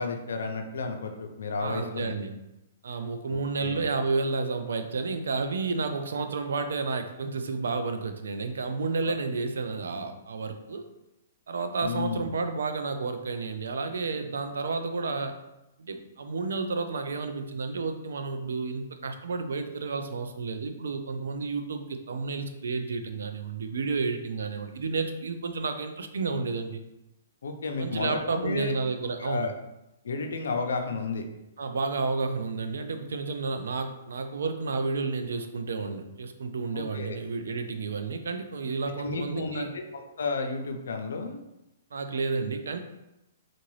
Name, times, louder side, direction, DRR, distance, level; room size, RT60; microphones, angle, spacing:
voice 1, 0.0-2.2 3.3-3.9 9.0-9.1 11.8-12.3 27.4-28.7 29.2-29.5 30.0-31.2 36.7-37.2 39.0-41.4, left 4 dB, 85° left, 4 dB, 0.5 m, -32 dB
voice 2, 1.6-2.3 2.8-10.9 11.5-15.4 15.8-26.8 27.8-29.5 31.6-39.7 41.9-42.8, right 4 dB, 85° right, 8 dB, 0.4 m, -31 dB
3.8 x 2.5 x 3.1 m, 0.92 s
hypercardioid pair, 155°, 0 cm